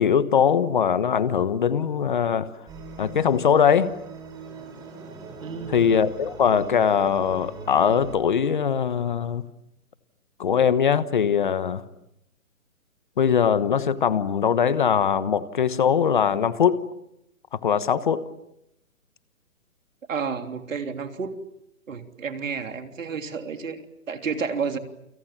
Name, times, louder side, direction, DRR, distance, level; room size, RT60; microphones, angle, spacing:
voice 1, 0.0-2.5 3.0-3.9 5.7-9.4 10.4-11.8 13.2-16.8 17.5-18.2, left 7 dB, 35° left, 14 dB, 1.2 m, -21 dB
sound 1, 2.7-8.2, right 4 dB, 10° right, 4.2 m, -40 dB
voice 2, 5.4-6.0 20.1-21.3 21.9-24.8, right 5 dB, 65° right, 6 dB, 3.3 m, -31 dB
29.0 x 27.5 x 7.4 m, 0.83 s
hypercardioid pair, 170°, 42 cm